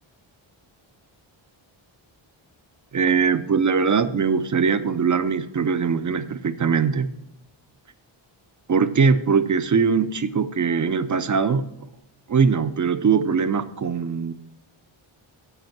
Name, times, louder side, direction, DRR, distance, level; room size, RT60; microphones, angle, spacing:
voice 1, 2.9-7.1 8.7-11.6 12.3-14.3, right 5 dB, 40° right, 11 dB, 0.6 m, -21 dB
8.3 x 7.9 x 5.9 m, 0.79 s
wide cardioid pair, 120°, 48 cm